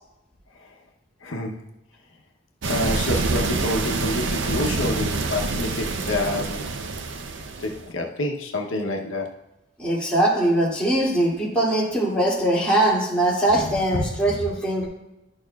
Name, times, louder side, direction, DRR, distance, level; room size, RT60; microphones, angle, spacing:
voice 1, 1.2-1.6 2.7-6.8 7.6-9.3, left 2 dB, 90° left, 2 dB, 0.8 m, -28 dB
sound 1, 2.6-7.9, right 3 dB, 75° right, 0.6 m, -26 dB
voice 2, 9.8-14.9, right 1 dB, 5° left, -7 dB, 2.4 m, -21 dB
11.5 x 6.5 x 2.3 m, 0.92 s
head